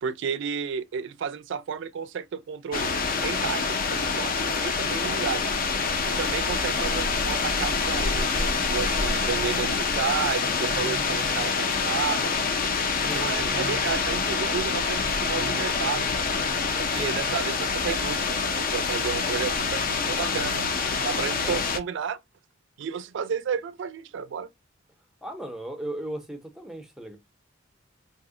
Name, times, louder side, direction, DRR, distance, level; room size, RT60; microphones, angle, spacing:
voice 1, 0.0-2.9 3.2-5.4 6.0-12.3 13.0-16.3 16.7-22.2 22.8-24.5, right 7 dB, 65° right, 0.3 m, -32 dB
sound 1, 2.7-21.8, left 4 dB, 45° left, 0.4 m, -26 dB
voice 2, 13.0-13.6 17.0-17.1 21.1-21.6 25.2-27.2, right 1 dB, 5° right, 0.5 m, -37 dB
2.7 x 2.1 x 3.6 m
head